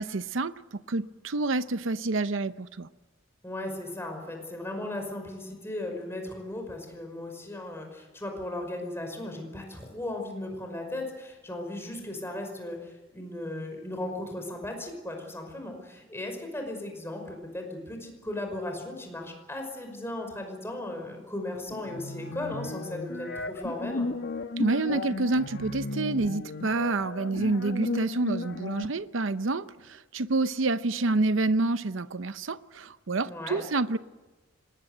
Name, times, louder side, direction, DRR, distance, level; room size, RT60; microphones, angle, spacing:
voice 1, 0.0-2.9 24.6-34.0, right 3 dB, 70° right, 0.8 m, -28 dB
voice 2, 3.4-24.1 33.3-33.6, left 1 dB, 10° left, 5.4 m, -36 dB
sound 1, 21.7-28.9, left 2 dB, 60° left, 1.1 m, -35 dB
26.0 x 20.0 x 8.0 m
head